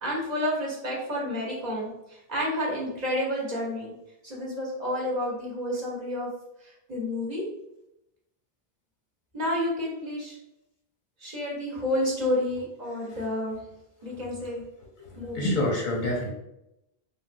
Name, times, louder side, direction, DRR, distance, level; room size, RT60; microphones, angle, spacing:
voice 1, 0.0-3.9 4.2-6.3 6.6-7.4 9.3-10.4 11.2-13.6 14.0-14.6 15.2-15.5, left 1 dB, 45° right, -5 dB, 0.9 m, -30 dB
voice 2, 15.0-16.3, left 1 dB, 55° left, -2 dB, 0.7 m, -28 dB
3.4 x 2.3 x 2.5 m, 0.87 s
omnidirectional pair, 1.1 m